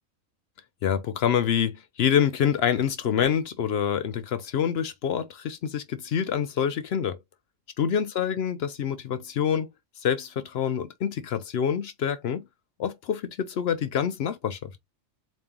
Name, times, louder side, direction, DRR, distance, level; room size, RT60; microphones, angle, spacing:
voice 1, 0.8-7.2 7.8-9.7 10.0-12.4 12.8-14.7, left 8 dB, 65° left, 0.7 m, -26 dB
4.1 x 2.5 x 3.6 m
omnidirectional pair, 1.4 m